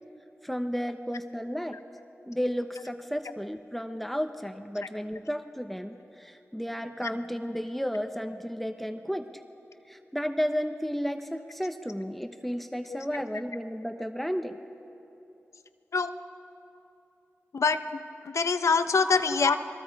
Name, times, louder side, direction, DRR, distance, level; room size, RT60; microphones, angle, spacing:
voice 1, 0.4-1.8 2.3-9.2 9.9-14.6, equal, 5° left, 7 dB, 0.9 m, -33 dB
voice 2, 18.2-19.6, left 4 dB, 85° left, 10 dB, 0.8 m, -24 dB
29.0 x 22.0 x 4.7 m, 2.8 s
wide cardioid pair, 65°, 5 cm